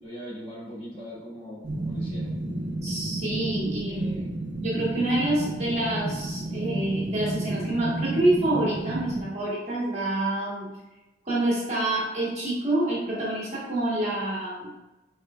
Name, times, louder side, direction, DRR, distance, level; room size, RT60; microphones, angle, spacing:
voice 1, 0.0-2.4 3.9-4.3, equal, 30° left, -8 dB, 1.4 m, -40 dB
sound 1, 1.6-9.2, right 2 dB, 60° right, 0.7 m, -32 dB
voice 2, 2.8-4.2 4.6-10.7 11.2-14.7, right 1 dB, 35° right, -6 dB, 1.1 m, -27 dB
4.6 x 3.2 x 2.3 m, 0.99 s
head